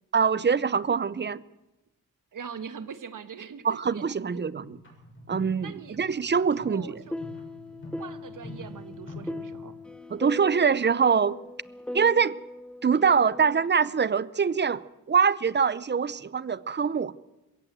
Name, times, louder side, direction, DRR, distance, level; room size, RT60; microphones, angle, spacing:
voice 1, 0.1-1.4 3.6-4.8 5.3-7.0 10.1-11.4 11.9-12.4 12.8-17.1, right 6 dB, 30° right, 19 dB, 0.7 m, -24 dB
voice 2, 2.3-4.4 5.6-6.2 6.5-7.1 8.0-9.7, right 6 dB, 60° right, 11 dB, 1.4 m, -42 dB
sound 1, 4.6-9.7, left 1 dB, 35° left, 7.2 m, -45 dB
sound 2, 6.7-13.7, left 1 dB, 5° left, 0.9 m, -40 dB
21.5 x 17.0 x 8.0 m, 0.99 s
cardioid pair, 95°, 36 cm